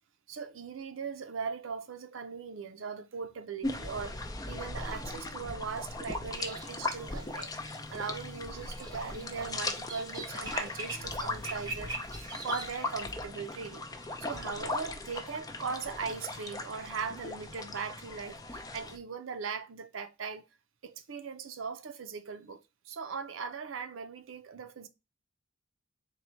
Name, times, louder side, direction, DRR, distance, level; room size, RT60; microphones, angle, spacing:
voice 1, 0.3-13.8 14.2-20.5 20.8-24.9, right 5 dB, 90° right, 0.6 m, -39 dB
sound 1, 3.6-19.0, left 2 dB, 20° left, 0.5 m, -38 dB
sound 2, 6.3-13.1, right 3 dB, 20° right, 0.8 m, -43 dB
4.0 x 2.3 x 4.4 m
head